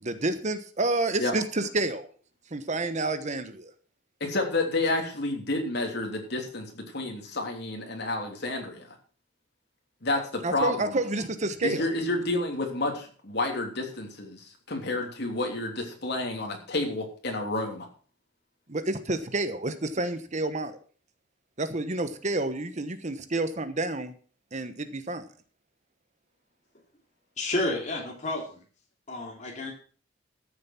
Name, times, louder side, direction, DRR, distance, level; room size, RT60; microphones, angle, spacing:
voice 1, 0.0-2.1 2.5-3.7 10.4-11.8 18.7-20.8 21.6-24.1 24.5-25.2, right 2 dB, 40° right, 11 dB, 1.1 m, -29 dB
voice 2, 4.2-8.9 10.0-10.9 11.6-17.9, left 2 dB, 60° left, 2 dB, 3.1 m, -30 dB
voice 3, 27.4-28.6 29.1-29.7, left 2 dB, 40° left, 0 dB, 2.9 m, -30 dB
13.5 x 7.4 x 6.0 m, 0.42 s
head